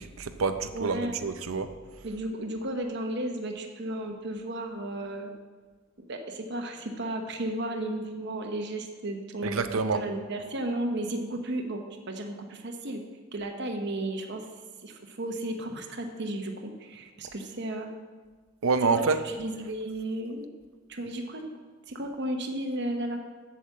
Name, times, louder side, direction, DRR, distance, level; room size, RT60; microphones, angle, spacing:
voice 1, 0.0-1.7 9.4-10.0 18.6-19.2, right 4 dB, 80° right, 9 dB, 0.6 m, -27 dB
voice 2, 0.7-1.2 2.0-5.3 6.1-9.6 9.9-13.0 13.3-14.5 14.8-17.9 18.9-20.5 20.9-21.4 21.9-23.2, right 1 dB, 55° right, 3 dB, 1.0 m, -34 dB
8.2 x 7.0 x 7.5 m, 1.4 s
head